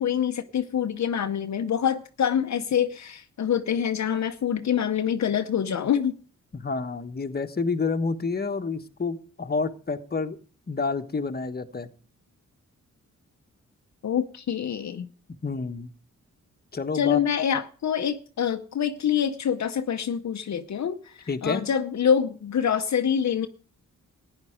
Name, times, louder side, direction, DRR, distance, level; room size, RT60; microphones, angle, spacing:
voice 1, 0.0-6.1 14.0-15.1 16.9-23.5, left 8 dB, 65° left, 0.8 m, -26 dB
voice 2, 6.5-10.4 10.7-11.9 15.4-15.9 16.7-17.2 21.3-21.6, left 4 dB, 30° left, 1.3 m, -29 dB
14.5 x 9.9 x 5.0 m
cardioid pair, 80°, 30 cm